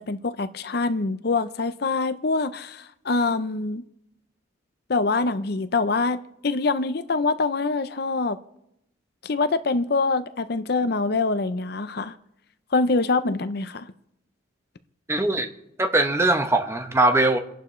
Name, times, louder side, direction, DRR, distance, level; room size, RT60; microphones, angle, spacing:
voice 1, 0.1-3.8 4.9-8.4 9.2-12.1 12.7-13.9, left 3 dB, 55° left, 0.6 m, -24 dB
voice 2, 15.1-15.5 15.8-17.4, right 2 dB, 15° right, 0.9 m, -21 dB
29.5 x 11.0 x 3.2 m
head